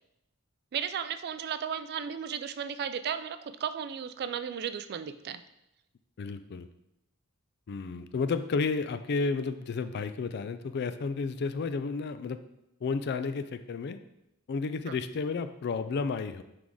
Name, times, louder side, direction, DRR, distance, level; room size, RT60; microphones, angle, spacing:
voice 1, 0.7-5.4 14.9-15.0, right 8 dB, 45° right, 12 dB, 0.3 m, -35 dB
voice 2, 6.2-6.7 7.7-12.4 12.8-14.0 14.5-16.4, left 4 dB, 50° left, 11 dB, 0.4 m, -32 dB
6.0 x 4.7 x 3.7 m, 0.85 s
head